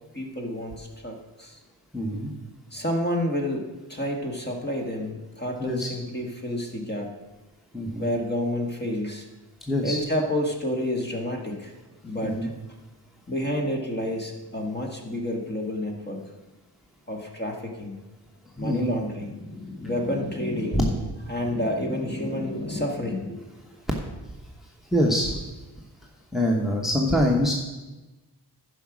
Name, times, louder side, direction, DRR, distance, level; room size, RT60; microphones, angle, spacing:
voice 1, 0.1-1.6 2.7-7.1 8.0-9.3 9.8-11.7 12.0-12.5 13.3-16.4 17.1-17.9 18.6-23.4, left 1 dB, 25° left, 2 dB, 1.7 m, -29 dB
voice 2, 1.9-2.3 5.6-5.9 7.7-8.0 9.7-10.0 12.2-12.5 18.6-19.0 20.7-20.8 24.9-25.3 26.3-27.5, equal, ahead, 0 dB, 1.1 m, -24 dB
11.5 x 5.1 x 6.1 m, 1.1 s
wide cardioid pair, 95°, 40 cm